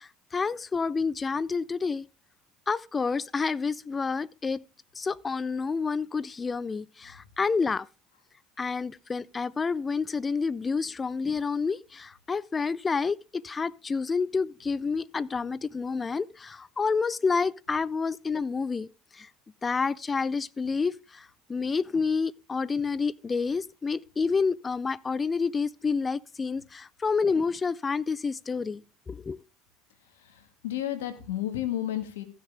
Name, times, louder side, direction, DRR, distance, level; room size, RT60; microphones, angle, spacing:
voice 1, 0.0-2.1 2.7-4.6 5.0-7.9 8.6-18.9 19.1-19.3 19.6-28.8 29.1-29.4, left 4 dB, 25° left, 0.4 m, -29 dB
voice 2, 30.2-32.2, left 12 dB, 90° left, 1.7 m, -32 dB
15.5 x 6.5 x 3.4 m
supercardioid pair, 85°, 0 cm